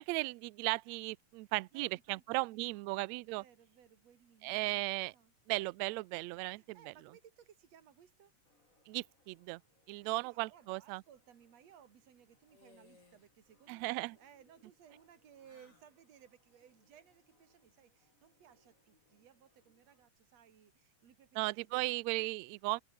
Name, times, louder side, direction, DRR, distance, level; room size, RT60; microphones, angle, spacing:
voice 1, 0.0-3.4 4.4-5.1 5.5-6.9 8.9-9.6 9.9-11.0 13.7-14.2 21.4-22.8, right 23 dB, 80° right, 1.8 m, -36 dB
voice 2, 1.4-2.9 3.2-4.8 5.1-5.3 6.5-8.3 10.0-22.0, right 9 dB, 60° right, 3.4 m, -62 dB
sound 1, 8.4-20.1, left 2 dB, 25° left, 7.8 m, -75 dB
sound 2, 12.5-13.3 13.6-14.2 15.4-15.9, left 3 dB, 50° left, 6.6 m, -65 dB
omnidirectional pair, 3.4 m